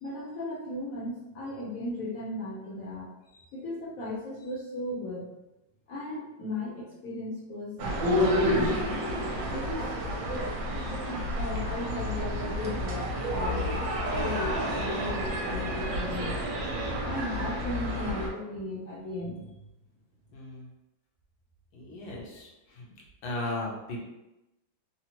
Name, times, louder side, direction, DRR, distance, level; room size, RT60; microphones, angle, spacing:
voice 1, 0.0-3.1 3.3-5.3 5.9-9.1 9.5-9.9 11.1-13.7 14.1-16.4 17.0-19.4, left 1 dB, 60° left, -6 dB, 0.9 m, -36 dB
sound 1, 7.8-18.3, equal, 70° right, 1.3 m, -30 dB
voice 2, 20.3-20.7 21.7-22.9 23.2-24.0, left 2 dB, 80° left, -3 dB, 1.7 m, -36 dB
4.1 x 2.0 x 2.8 m, 0.97 s
omnidirectional pair, 2.2 m